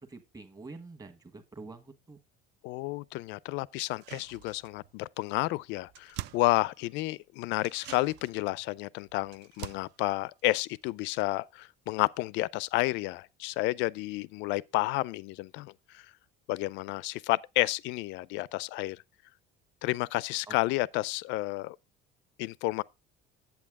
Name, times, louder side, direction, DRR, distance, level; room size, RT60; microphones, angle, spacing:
voice 1, 0.0-2.2 20.5-20.6, right 3 dB, 20° right, 1.4 m, -47 dB
voice 2, 2.6-16.1 16.5-19.0 19.8-21.8 22.4-22.8, left 20 dB, 70° left, 0.4 m, -31 dB
sound 1, 3.8-5.0 5.3-5.4 5.6-7.1 7.6-11.3 11.6-11.7, right 15 dB, 60° right, 0.5 m, -47 dB
8.5 x 8.1 x 3.5 m
cardioid pair, 135°, 20 cm